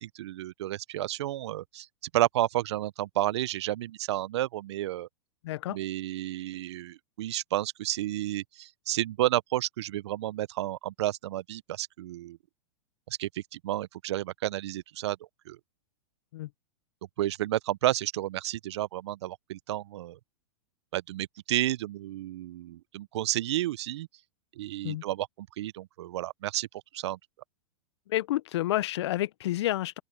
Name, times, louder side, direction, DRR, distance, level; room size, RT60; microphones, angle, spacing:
voice 1, 0.0-1.9 2.1-5.1 5.7-12.4 13.1-15.2 15.5-15.6 17.2-20.2 20.9-24.1 24.6-27.2, right 14 dB, 65° right, 1.0 m, -31 dB
voice 2, 5.4-5.8 16.3-16.5 24.8-25.0 28.1-30.0, left 15 dB, 65° left, 0.9 m, -29 dB
open air
hypercardioid pair, 110°, 16 cm